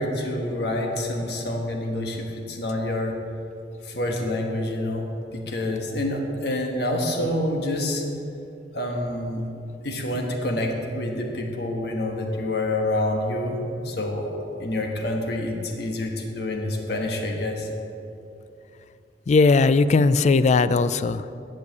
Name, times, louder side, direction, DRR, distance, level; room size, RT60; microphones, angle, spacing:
voice 1, 0.0-3.2 3.8-5.1 5.3-8.0 8.7-9.4 9.8-14.3 14.6-17.7, left 1 dB, 65° left, 2 dB, 1.3 m, -27 dB
voice 2, 19.3-21.3, left 3 dB, 40° left, 14 dB, 0.3 m, -18 dB
11.0 x 6.4 x 8.4 m, 2.7 s
head